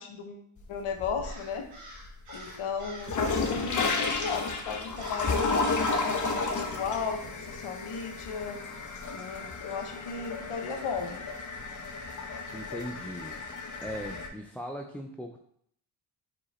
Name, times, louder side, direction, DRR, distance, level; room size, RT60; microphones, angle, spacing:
voice 1, 0.0-1.7 2.3-5.5 6.0-8.6 9.1-11.2, left 5 dB, 80° left, 4 dB, 1.1 m, -35 dB
sound 1, 0.6-1.5 2.0-14.3, left 3 dB, 40° left, 0.9 m, -32 dB
Crow, 1.2-3.2 3.4-3.8 4.2-4.5 5.0-5.3 5.8-6.1, right 2 dB, 85° right, 1.9 m, -48 dB
voice 2, 12.5-13.4 13.8-15.4, equal, 5° left, 2 dB, 0.4 m, -39 dB
4.8 x 4.8 x 4.2 m, 0.67 s
cardioid pair, 95°, 49 cm